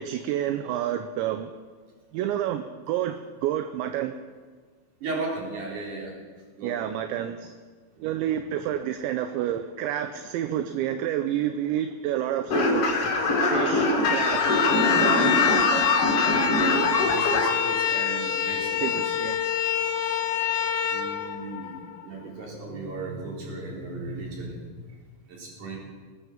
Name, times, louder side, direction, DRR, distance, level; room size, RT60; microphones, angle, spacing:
voice 1, 0.0-1.5 2.1-4.1 6.6-7.6 8.0-13.0 13.5-14.6 15.0-15.6 18.8-19.4, right 11 dB, 80° right, 8 dB, 2.9 m, -29 dB
voice 2, 5.0-6.1 6.6-6.8 7.1-7.2 17.0-19.2 20.9-24.8 25.3-25.8, right 2 dB, 45° right, -3 dB, 5.0 m, -36 dB
sound 1, 12.5-17.5, left 2 dB, 40° left, 2.4 m, -23 dB
sound 2, 13.9-22.1, left 9 dB, 80° left, 3.1 m, -26 dB
20.0 x 9.5 x 7.3 m, 1.5 s
omnidirectional pair, 5.3 m